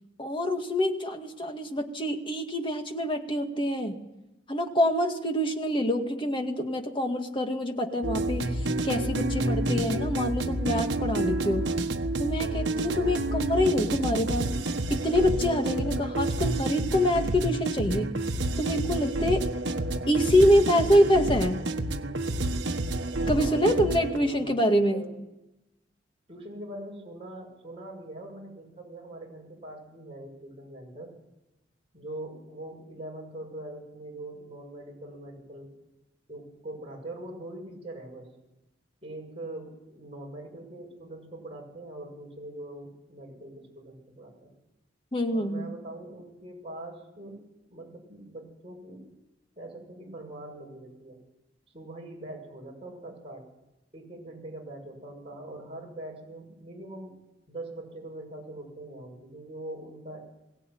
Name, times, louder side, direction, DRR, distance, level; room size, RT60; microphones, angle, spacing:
voice 1, 0.2-4.0 4.5-11.7 12.2-14.5 14.9-18.1 18.6-19.5 20.1-21.6 23.3-25.1 45.1-45.7, equal, 25° left, 4 dB, 2.0 m, -26 dB
sound 1, 8.0-24.2, right 2 dB, 75° right, 1.4 m, -29 dB
voice 2, 23.3-25.2 26.3-31.1 31.9-35.7 36.3-38.3 39.0-44.5 45.3-47.4 47.7-49.0 49.5-51.2 51.7-53.5 53.9-57.2 57.5-60.3, right 1 dB, 30° right, -1 dB, 6.6 m, -42 dB
22.0 x 17.0 x 9.3 m, 0.98 s
head